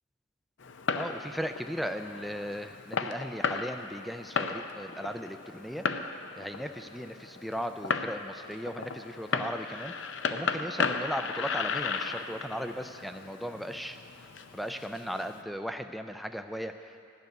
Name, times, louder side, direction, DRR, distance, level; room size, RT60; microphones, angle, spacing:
Fireworks, 0.6-15.4, left 5 dB, 65° left, 0.5 m, -35 dB
voice 1, 1.0-5.8 6.4-14.0 14.5-17.0, equal, ahead, 7 dB, 0.4 m, -37 dB
13.0 x 6.7 x 9.2 m, 2.5 s
head